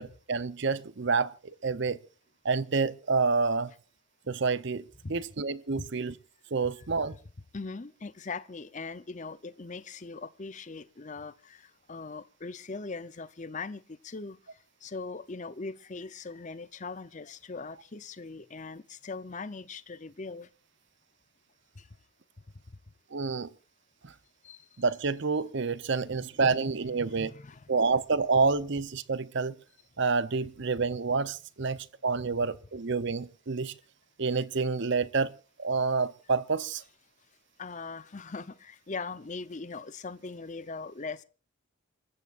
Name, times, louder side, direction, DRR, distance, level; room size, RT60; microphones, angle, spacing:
voice 1, 0.0-2.0 2.4-3.7 4.3-4.8 5.1-6.1 6.5-7.1 23.1-23.5 24.0-24.1 24.8-27.3 27.7-29.5 30.0-33.7 34.2-35.3 35.6-36.8, right 4 dB, 55° right, 0.7 m, -28 dB
voice 2, 6.8-7.2 7.5-14.4 14.8-20.5 21.8-21.9 22.7-22.8 24.4-24.7 26.0-26.3 26.7-28.0 37.6-41.2, left 4 dB, 35° left, 0.7 m, -41 dB
28.0 x 14.5 x 2.5 m
head